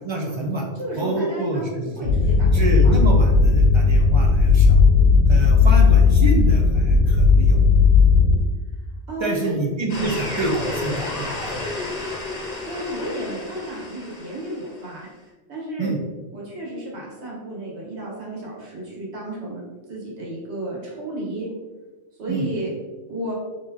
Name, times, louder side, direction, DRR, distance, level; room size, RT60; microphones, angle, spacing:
voice 1, 0.0-0.7 1.0-2.1 2.5-4.9 5.3-7.6 9.2-11.6 15.8-16.0 22.3-22.4, right 2 dB, 50° right, 0 dB, 0.3 m, -27 dB
voice 2, 0.8-2.9 3.4-3.6 9.1-9.6 12.6-15.1 15.5-15.9 16.3-19.6 19.9-21.5 22.2-22.7 23.1-23.3, right 1 dB, 75° right, -4 dB, 1.5 m, -32 dB
sound 1, 2.0-8.4, left 4 dB, 80° left, 0.9 m, -15 dB
sound 2, 9.9-14.9, left 2 dB, 40° left, 0.9 m, -31 dB
4.5 x 3.0 x 2.8 m, 1.2 s
omnidirectional pair, 1.1 m